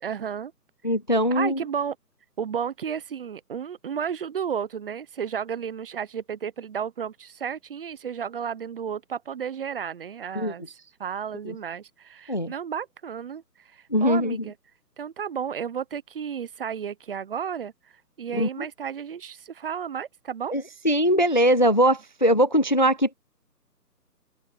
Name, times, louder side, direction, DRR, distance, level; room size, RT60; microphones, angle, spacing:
voice 1, 0.0-0.5 1.3-2.0 2.4-10.6 11.0-13.4 13.7-14.5 15.0-17.7 18.2-20.5, right 7 dB, 35° right, 1.2 m, -32 dB
voice 2, 0.8-1.6 10.4-10.5 11.5-11.6 12.3-12.5 13.9-14.4 18.3-18.5 20.5-23.1, equal, 30° left, 0.5 m, -21 dB
open air
figure-of-eight pair, 150°, 49 cm